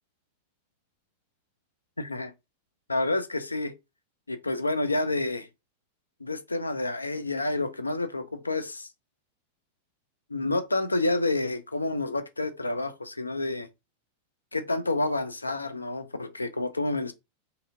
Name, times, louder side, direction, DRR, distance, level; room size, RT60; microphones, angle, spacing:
voice 1, 2.0-2.3 2.9-3.7 4.3-5.5 6.2-8.9 10.3-13.7 14.5-17.1, left 2 dB, 80° left, 0.3 m, -29 dB
2.8 x 2.6 x 2.4 m
figure-of-eight pair, 90°, 0 cm